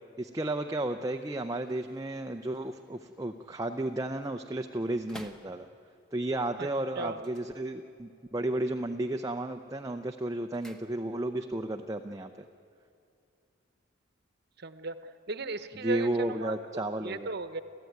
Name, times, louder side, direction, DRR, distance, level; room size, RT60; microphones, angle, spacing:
voice 1, 0.2-5.7 6.1-12.3 15.8-17.3, right 1 dB, 15° right, 5 dB, 0.6 m, -33 dB
sound 1, 1.1-6.1 7.1-8.2 8.5-9.0 9.4-11.5 11.7-11.8, equal, 5° left, 1.2 m, -55 dB
voice 2, 14.6-16.5 17.0-17.6, right 3 dB, 50° right, 11 dB, 1.0 m, -36 dB
29.5 x 14.0 x 9.3 m, 2.5 s
head